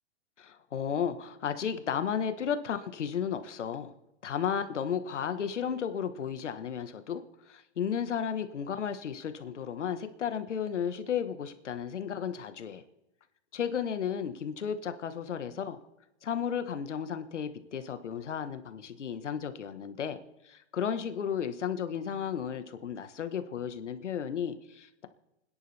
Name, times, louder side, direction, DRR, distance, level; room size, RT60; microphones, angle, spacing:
voice 1, 0.4-3.9 4.2-12.8 13.5-15.8 16.2-20.2 20.4-25.1, left 8 dB, 75° left, 10 dB, 1.6 m, -34 dB
30.0 x 10.5 x 3.5 m, 0.93 s
hypercardioid pair, 170°, 36 cm